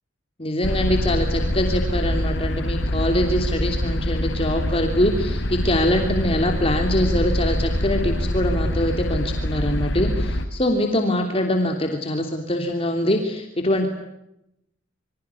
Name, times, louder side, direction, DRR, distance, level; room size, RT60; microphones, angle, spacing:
voice 1, 0.4-13.9, left 1 dB, 30° left, 3 dB, 3.2 m, -23 dB
sound 1, 0.6-10.5, equal, 75° left, 3.7 m, -24 dB
28.0 x 25.0 x 8.5 m, 0.85 s
head